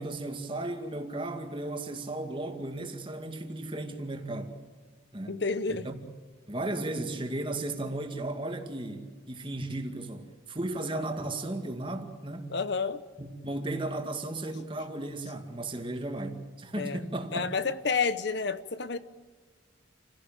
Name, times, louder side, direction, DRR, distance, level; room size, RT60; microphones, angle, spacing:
voice 1, 0.0-4.6 5.1-5.4 5.8-6.0 6.5-12.5 13.2-17.4, right 2 dB, 25° right, 2.2 m, -35 dB
voice 2, 5.3-5.9 12.5-13.0 16.8-17.0 17.3-19.0, left 5 dB, 55° left, 0.9 m, -30 dB
29.0 x 17.0 x 8.9 m
head